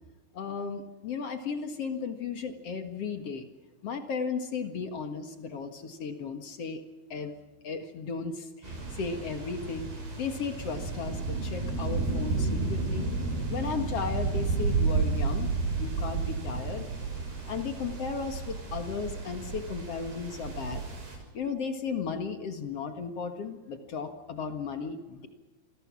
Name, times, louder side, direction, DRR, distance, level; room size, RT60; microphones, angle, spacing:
voice 1, 0.3-3.5 3.8-6.8 7.1-7.4 7.6-9.9 10.2-13.1 13.5-15.5 15.8-16.9 17.5-20.8 21.3-25.3, left 5 dB, 50° left, 7 dB, 2.0 m, -35 dB
sound 1, 8.6-21.2, right 4 dB, 65° right, 8.2 m, -32 dB
28.0 x 21.5 x 6.3 m, 1.2 s
omnidirectional pair, 4.7 m